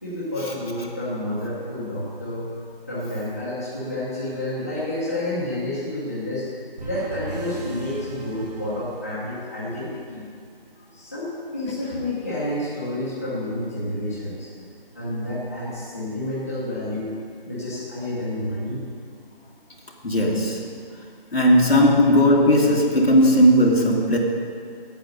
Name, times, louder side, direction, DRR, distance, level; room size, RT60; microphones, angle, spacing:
voice 1, 0.0-2.5 2.9-6.5 6.8-10.2 10.9-14.5 14.9-17.1 17.4-18.8, left 1 dB, 15° left, -11 dB, 1.1 m, -29 dB
sound 1, 6.8-9.6, right 2 dB, 45° right, 1.8 m, -37 dB
voice 2, 20.0-20.8 21.3-24.2, equal, 85° left, -2 dB, 2.0 m, -17 dB
9.0 x 8.0 x 6.5 m, 2.2 s
figure-of-eight pair, 175°, 29 cm